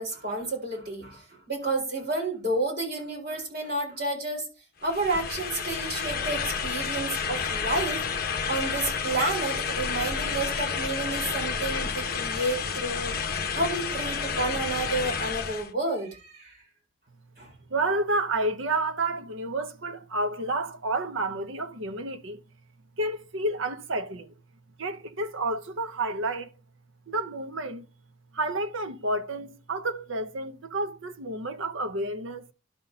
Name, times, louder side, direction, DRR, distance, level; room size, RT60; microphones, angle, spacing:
voice 1, 0.0-4.4 4.8-8.0 8.5-13.1 13.5-16.6 17.4-17.5, right 2 dB, 50° right, 4.3 m, -30 dB
sound 1, 4.8-15.7, left 6 dB, 45° left, 0.9 m, -30 dB
voice 2, 17.7-22.4 23.0-24.3 24.8-26.5 27.1-27.9 28.3-32.4, right 2 dB, 65° right, 0.8 m, -30 dB
11.5 x 4.1 x 5.5 m
head